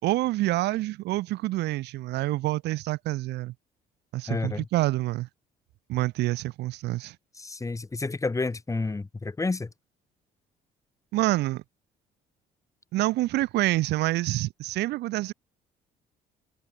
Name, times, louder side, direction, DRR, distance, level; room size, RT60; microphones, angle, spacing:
voice 1, 0.0-3.5 4.1-5.3 5.9-7.2 11.1-11.6 12.9-15.3, right 17 dB, 80° right, 4.0 m, -27 dB
voice 2, 4.3-4.6 7.4-9.7, left 3 dB, 20° left, 7.5 m, -30 dB
cardioid pair, 110°, 17 cm